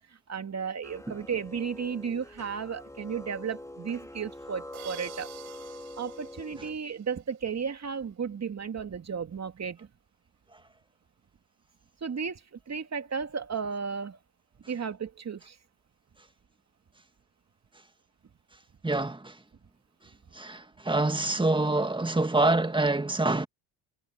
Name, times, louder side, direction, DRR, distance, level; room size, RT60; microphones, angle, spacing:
voice 1, 0.1-5.3 6.0-9.9 12.0-14.2 14.7-15.6, right 6 dB, 30° right, 2.7 m, -34 dB
sound 1, 0.8-6.7, left 1 dB, 5° left, 2.4 m, -44 dB
sound 2, 4.7-7.6, right 27 dB, 80° right, 4.8 m, -49 dB
voice 2, 18.8-19.4 20.3-23.5, right 2 dB, 10° right, 1.9 m, -26 dB
supercardioid pair, 75°, 50 cm